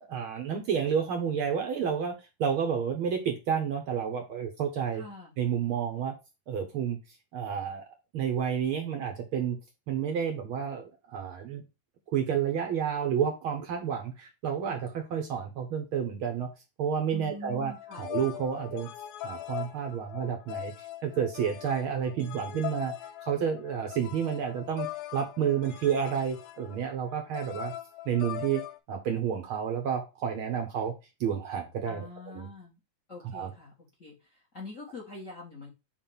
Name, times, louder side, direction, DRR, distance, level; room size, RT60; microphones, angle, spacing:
voice 1, 0.1-2.1 2.4-5.0 5.4-6.1 6.5-7.0 7.3-7.9 8.1-9.6 9.9-11.6 12.1-16.5 16.8-18.9 19.2-20.7 21.0-22.9 23.2-24.9 25.1-27.7 28.0-28.6 28.9-30.9 31.2-32.1 32.3-32.5 33.3-33.5, right 7 dB, 70° right, 4 dB, 1.3 m, -30 dB
voice 2, 4.9-5.3 17.1-18.1 31.8-32.8 33.1-33.7 34.0-35.7, left 3 dB, 40° left, -1 dB, 1.1 m, -44 dB
sound 1, 17.7-28.8, left 14 dB, 90° left, 2.0 m, -41 dB
7.2 x 2.6 x 5.4 m, 0.27 s
omnidirectional pair, 3.4 m